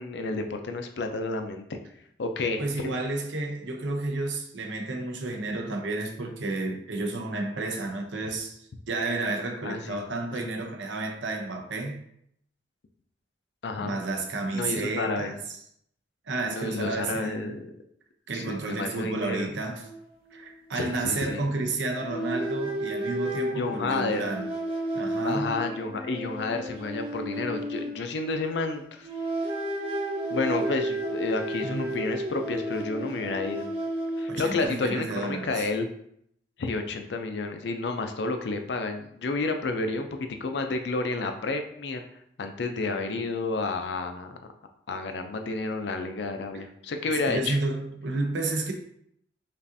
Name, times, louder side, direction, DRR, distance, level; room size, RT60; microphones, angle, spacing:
voice 1, 0.0-1.8 2.2-2.9 9.6-10.0 10.3-10.6 13.6-14.0 14.5-15.3 16.5-17.7 18.3-19.5 20.7-21.4 23.5-24.2 25.2-29.1 30.3-33.7 34.2-35.9 36.6-42.0 42.4-44.4 44.9-47.6, left 3 dB, 70° left, 6 dB, 0.5 m, -30 dB
voice 2, 2.6-8.6 8.9-12.0 13.8-15.3 16.3-17.5 18.3-19.9 20.3-24.5 24.9-25.5 31.6-32.0 34.3-35.6 46.5-46.6 47.3-48.7, right 2 dB, 85° right, 3 dB, 0.7 m, -31 dB
sound 1, 19.8-20.0 20.3-20.5 22.0-28.6 29.0-34.6, right 1 dB, 30° right, 0.7 m, -32 dB
5.2 x 2.5 x 2.7 m, 0.70 s
head